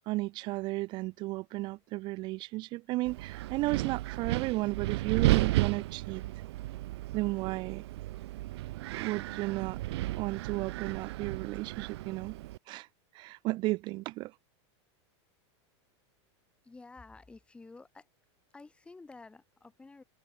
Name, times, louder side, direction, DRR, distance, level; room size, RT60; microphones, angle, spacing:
voice 1, 0.1-6.2 7.1-7.8 8.9-9.8 10.1-12.4 12.7-12.9 13.1-14.3, right 20 dB, 30° right, 0.8 m, -34 dB
Wind, 3.1-12.6, right 17 dB, 65° right, 0.6 m, -33 dB
voice 2, 16.6-18.1 18.5-20.0, left 3 dB, 5° left, 2.9 m, -51 dB
supercardioid pair, 165°, 15 cm